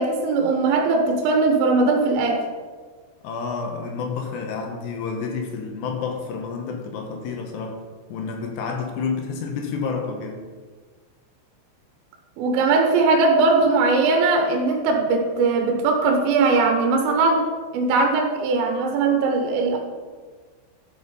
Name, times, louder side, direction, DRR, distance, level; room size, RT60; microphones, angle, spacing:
voice 1, 0.0-2.4 12.4-17.5 17.7-19.8, right 3 dB, 85° right, 2 dB, 3.7 m, -20 dB
voice 2, 3.2-7.8 8.1-10.4, left 5 dB, 70° left, 3 dB, 3.0 m, -29 dB
12.5 x 6.5 x 5.4 m, 1.5 s
omnidirectional pair, 5.7 m